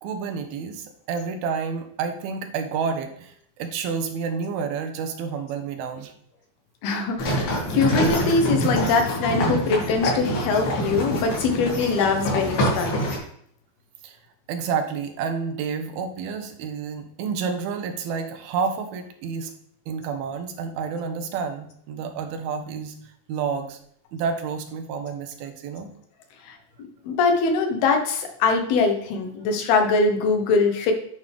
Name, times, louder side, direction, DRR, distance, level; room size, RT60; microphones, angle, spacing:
voice 1, 0.0-6.1 14.0-14.2 14.5-19.5 19.9-23.0 23.3-23.8 24.1-25.9, right 6 dB, 85° right, 6 dB, 2.8 m, -29 dB
voice 2, 6.8-13.1 26.5-26.6 27.0-30.9, left 4 dB, 85° left, 4 dB, 3.1 m, -22 dB
sound 1, 7.2-13.2, equal, 70° left, 4.2 m, -25 dB
9.8 x 5.4 x 3.4 m, 0.66 s
omnidirectional pair, 4.3 m